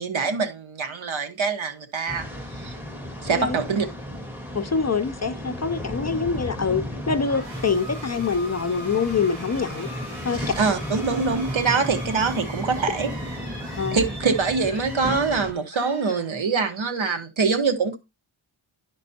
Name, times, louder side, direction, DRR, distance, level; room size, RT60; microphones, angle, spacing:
voice 1, 0.0-2.3 2.6-2.8 3.2-3.9 10.4-13.1 13.9-18.0, right 5 dB, 70° right, 1.3 m, -24 dB
sound 1, 2.1-15.5, equal, 5° right, 1.8 m, -34 dB
voice 2, 4.5-9.9 10.2-10.4 13.8-14.0, left 5 dB, 35° left, 0.5 m, -25 dB
sound 2, 7.2-16.8, right 1 dB, 35° right, 5.7 m, -41 dB
11.5 x 5.2 x 2.8 m
wide cardioid pair, 95°, 49 cm